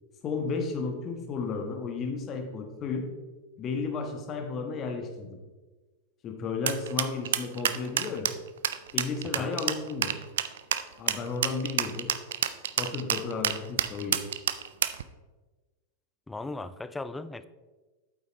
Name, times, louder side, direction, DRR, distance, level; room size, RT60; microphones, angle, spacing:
voice 1, 0.2-3.1 3.6-5.4 6.2-8.3 8.9-10.2 11.0-12.1 12.8-14.3, left 4 dB, 30° left, 3 dB, 1.4 m, -33 dB
sound 1, 6.7-15.0, right 10 dB, 60° right, 0.4 m, -28 dB
voice 2, 16.3-17.5, left 2 dB, 10° left, 14 dB, 0.4 m, -37 dB
8.6 x 8.1 x 3.1 m, 1.3 s
figure-of-eight pair, 90°, 0 cm